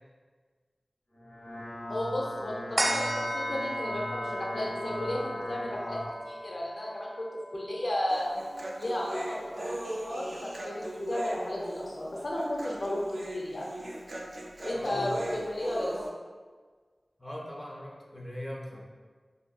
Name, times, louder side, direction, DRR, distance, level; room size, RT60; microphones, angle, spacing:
sound 1, 1.1-6.1, left 1 dB, 85° left, 0.9 m, -39 dB
voice 1, 1.9-8.3 8.8-9.6 10.0-13.7 14.6-16.0, left 1 dB, 65° left, -3 dB, 0.6 m, -33 dB
sound 2, 2.8-9.5 10.0-10.1, equal, 40° right, 0.8 m, -36 dB
Human voice, 8.1-16.1, right 1 dB, 60° right, 0.4 m, -39 dB
voice 2, 14.7-15.2 17.2-18.8, equal, 20° left, -2 dB, 0.4 m, -40 dB
3.3 x 2.6 x 2.3 m, 1.5 s
wide cardioid pair, 65°, 0 cm